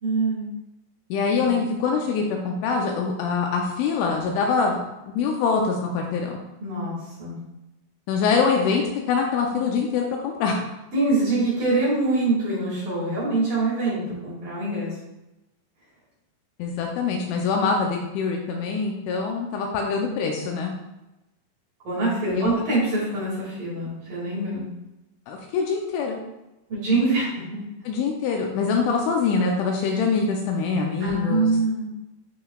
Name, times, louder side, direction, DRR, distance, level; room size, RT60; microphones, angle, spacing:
voice 1, 0.0-0.5 1.4-1.6 6.6-7.4 10.9-14.9 21.8-24.6 26.7-27.6 31.0-31.8, right 2 dB, 50° right, -8 dB, 3.1 m, -24 dB
voice 2, 1.1-4.8 5.1-6.4 8.1-10.6 16.6-20.8 22.3-22.5 25.3-26.2 27.9-31.5, left 5 dB, 80° left, 1 dB, 2.9 m, -24 dB
11.0 x 3.9 x 2.3 m, 0.96 s
omnidirectional pair, 5.9 m